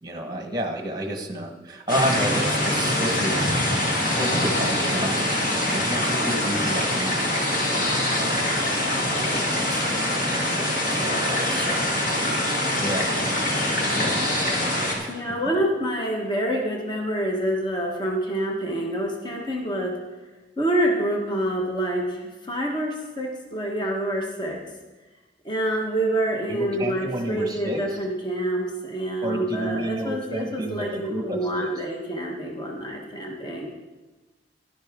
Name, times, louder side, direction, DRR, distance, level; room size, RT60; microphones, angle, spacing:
voice 1, 0.0-3.4 4.0-7.1 8.1-8.6 9.1-11.9 12.8-13.2 13.6-15.4 26.5-27.8 29.2-31.7, right 1 dB, 20° right, 4 dB, 1.3 m, -31 dB
sound 1, 1.9-14.9, left 1 dB, 45° left, 2.0 m, -24 dB
voice 2, 15.1-20.0 20.6-24.6 25.4-33.7, right 1 dB, 25° left, 0 dB, 1.3 m, -27 dB
11.5 x 11.5 x 3.7 m, 1.2 s
head